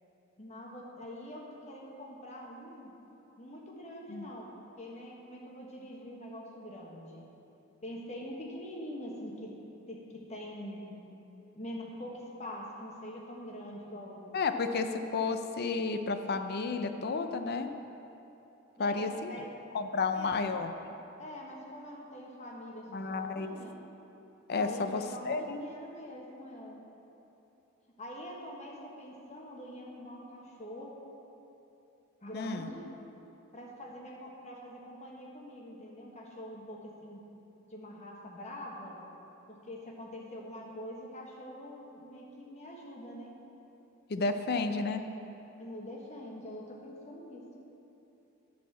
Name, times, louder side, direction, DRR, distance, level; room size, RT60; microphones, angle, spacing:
voice 1, 0.4-2.9 3.4-4.5 4.8-7.2 7.8-9.5 9.9-10.9 11.5-14.3 18.8-19.5 20.1-20.4 21.2-23.7 24.6-26.8 28.0-30.9 32.2-32.9 33.5-37.2 37.7-39.0 39.5-43.4 45.6-47.5, equal, 35° left, -2 dB, 1.3 m, -44 dB
voice 2, 14.3-17.7 18.8-19.3 19.7-20.7 22.9-23.6 24.5-25.6 32.3-32.7 44.1-45.0, left 4 dB, 50° left, 7 dB, 0.5 m, -32 dB
11.0 x 4.2 x 7.2 m, 3.0 s
head